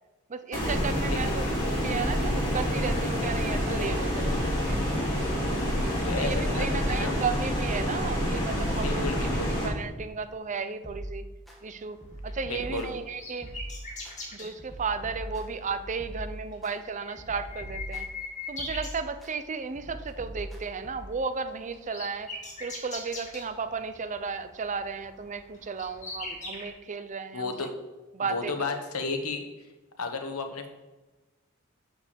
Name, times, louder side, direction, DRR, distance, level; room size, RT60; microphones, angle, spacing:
voice 1, 0.3-4.8 6.2-9.4 9.6-11.3 11.6-12.0 12.2-13.5 14.3-18.1 18.5-22.3 22.6-27.5 28.1-28.5, right 5 dB, 35° right, 11 dB, 0.6 m, -34 dB
sound 1, 0.5-9.7, equal, 20° left, 3.3 m, -28 dB
voice 2, 6.0-7.1 8.8-9.6 12.5-12.9 27.3-27.7 28.2-29.4 30.0-30.7, left 3 dB, 85° left, 6 dB, 1.3 m, -33 dB
sound 2, 10.8-11.6 12.0-13.1 13.4-14.2 14.6-16.7 17.2-18.2 18.6-19.3 19.7-21.2, right 1 dB, ahead, 1.9 m, -41 dB
sound 3, 11.9-14.6 15.5-15.7 16.1-16.2 16.5-19.6 20.0-20.3 20.6-26.7, left 2 dB, 35° left, 2.3 m, -41 dB
7.0 x 5.9 x 6.8 m, 1.2 s
head